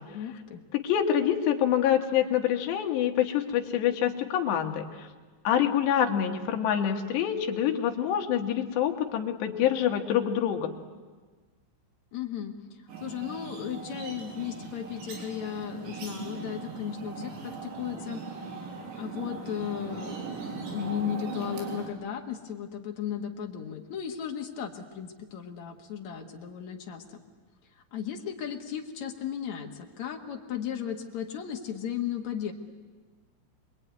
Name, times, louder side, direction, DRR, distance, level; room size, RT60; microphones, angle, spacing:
voice 1, 0.1-0.6 12.1-12.5 13.0-18.2 19.0-20.2 20.6-27.2 27.9-32.5, left 9 dB, 55° left, 3 dB, 2.1 m, -35 dB
voice 2, 0.7-5.1 5.5-10.8, left 9 dB, 75° left, 4 dB, 3.5 m, -26 dB
sound 1, 12.9-21.9, right 4 dB, 80° right, 5.6 m, -39 dB
26.0 x 22.0 x 9.5 m, 1.4 s
omnidirectional pair, 5.2 m